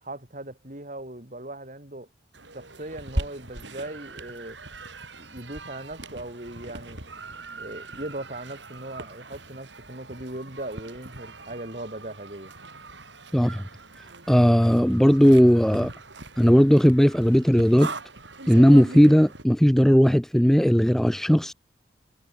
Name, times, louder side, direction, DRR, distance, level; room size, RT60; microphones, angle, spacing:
voice 1, 0.0-2.1 2.5-4.6 5.1-7.0 7.6-12.5, right 1 dB, 45° right, 4.8 m, -38 dB
sound 1, 2.3-19.4, right 2 dB, 75° right, 6.3 m, -40 dB
voice 2, 13.3-13.6 14.3-15.9 16.4-17.9 18.5-21.5, equal, ahead, 0.5 m, -17 dB
head